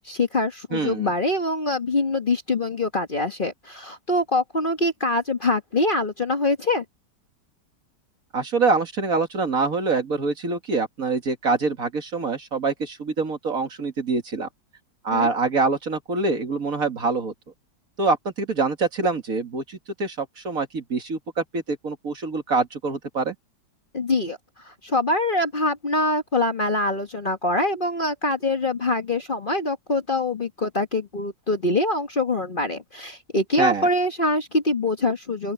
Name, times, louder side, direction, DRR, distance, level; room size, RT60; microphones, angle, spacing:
voice 1, 0.0-6.8 15.1-15.3 23.9-24.4 24.6-35.5, left 2 dB, 30° left, 1.5 m, -24 dB
voice 2, 0.7-1.1 8.3-14.5 15.0-17.3 18.0-23.4 33.6-33.9, right 4 dB, 50° right, 2.4 m, -25 dB
open air
omnidirectional pair, 1.9 m